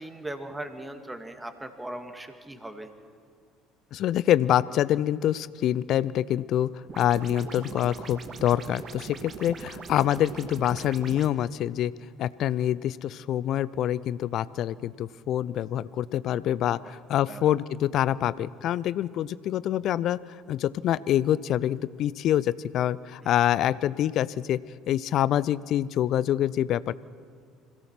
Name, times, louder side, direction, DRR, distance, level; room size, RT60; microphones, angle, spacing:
voice 1, 0.0-2.9 16.8-17.0 17.3-17.5 23.2-23.3, right 1 dB, 10° right, 6 dB, 2.2 m, -39 dB
voice 2, 3.9-6.7 7.0-11.9 12.2-20.2 20.5-24.6 24.9-26.9, left 11 dB, 55° left, 19 dB, 0.5 m, -26 dB
sound 1, 6.9-11.3, right 5 dB, 40° right, 1.5 m, -41 dB
26.0 x 17.0 x 5.9 m, 2.2 s
hypercardioid pair, 60°, 0 cm